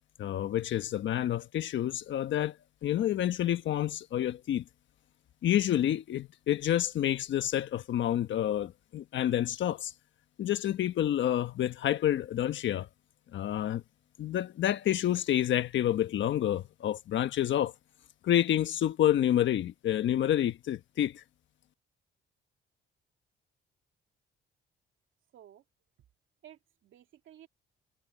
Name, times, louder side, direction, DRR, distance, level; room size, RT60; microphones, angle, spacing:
voice 1, 0.2-2.6 2.8-4.6 5.4-9.9 10.4-12.9 13.3-13.8 14.2-17.7 18.2-21.2, left 11 dB, 70° left, 1.3 m, -28 dB
voice 2, 25.3-25.6 26.4-27.5, right 11 dB, 75° right, 2.9 m, -54 dB
cardioid pair, 90°, 20 cm